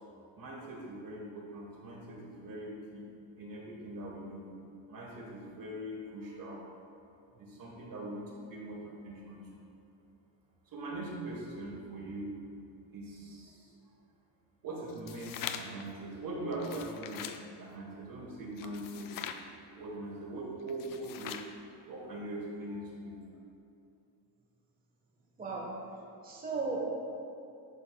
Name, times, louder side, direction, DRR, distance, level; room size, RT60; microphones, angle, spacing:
voice 1, 0.3-3.0 3.4-4.5 4.9-6.6 7.3-9.5 10.7-12.3 12.9-13.7 14.6-17.3 17.6-19.2 19.7-21.4 21.9-23.2, right 1 dB, 45° right, -2 dB, 1.5 m, -41 dB
sound 1, 14.9-15.8 16.5-17.4 18.6-19.4 20.7-21.5, left 9 dB, 45° left, 0.5 m, -42 dB
voice 2, 25.4-25.7 26.2-27.0, right 3 dB, 20° right, -3 dB, 1.2 m, -35 dB
11.0 x 5.3 x 2.3 m, 2.7 s
cardioid pair, 100°, 46 cm